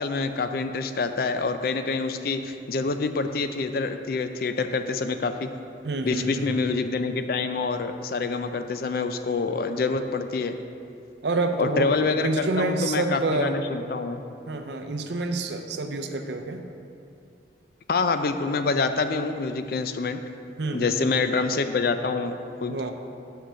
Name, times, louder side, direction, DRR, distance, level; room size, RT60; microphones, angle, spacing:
voice 1, 0.0-5.5 6.0-10.5 11.6-14.2 17.9-20.2 20.7-22.8, left 4 dB, 50° left, 8 dB, 0.4 m, -26 dB
voice 2, 5.8-6.5 11.2-13.5 14.5-16.6 20.6-21.1 22.7-22.9, right 2 dB, 70° right, 6 dB, 0.6 m, -28 dB
6.9 x 4.5 x 6.2 m, 2.5 s
head